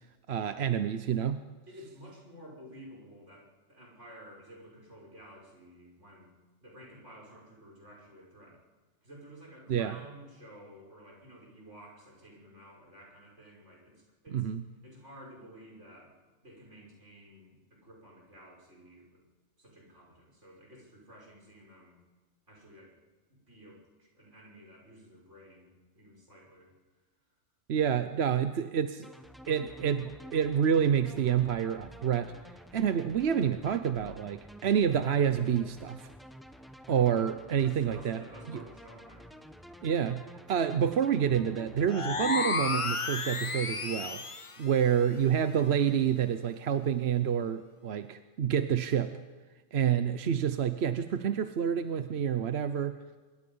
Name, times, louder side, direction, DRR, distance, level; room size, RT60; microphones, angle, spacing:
voice 1, 0.3-1.4 9.7-9.9 14.3-14.6 27.7-29.1 29.5-32.3 32.7-36.1 36.9-38.2 38.5-38.6 39.8-40.2 40.5-44.2 44.6-49.2 49.7-53.0, right 8 dB, 65° right, 10 dB, 1.0 m, -28 dB
voice 2, 1.7-6.3 6.6-8.6 9.0-14.5 14.8-16.2 16.4-19.2 19.6-22.0 22.5-23.0 23.3-26.7 36.9-39.6, equal, 80° right, -2 dB, 6.3 m, -52 dB
sound 1, 29.0-42.7, equal, ahead, 1.1 m, -50 dB
sound 2, 41.9-44.6, left 4 dB, 30° left, 0.9 m, -32 dB
25.5 x 23.0 x 5.5 m, 1.4 s
omnidirectional pair, 1.2 m